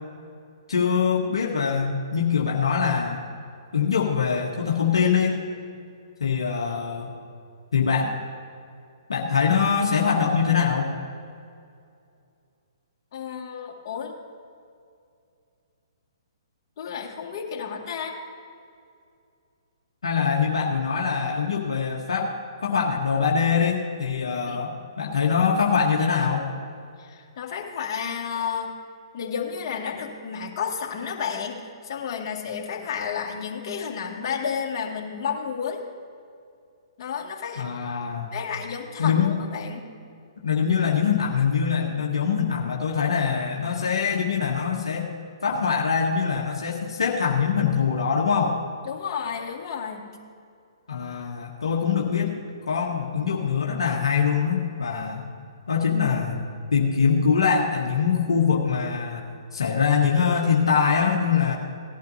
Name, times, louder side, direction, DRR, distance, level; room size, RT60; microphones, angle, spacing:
voice 1, 0.7-3.2 3.7-5.4 6.2-7.1 7.7-8.2 9.1-10.9 20.0-22.3 22.6-26.5 37.6-38.3 39.0-39.3 40.4-45.1 45.4-48.6 50.9-52.4 52.7-55.3 55.7-56.4 56.7-61.6, left 6 dB, 80° left, -2 dB, 1.4 m, -23 dB
voice 2, 13.1-14.1 16.8-18.2 24.5-24.7 27.0-28.7 29.1-35.8 37.0-37.7 38.3-39.9 48.9-50.1, left 7 dB, 50° left, -1 dB, 2.1 m, -31 dB
18.0 x 11.5 x 2.7 m, 2.4 s
hypercardioid pair, 130°, 3 cm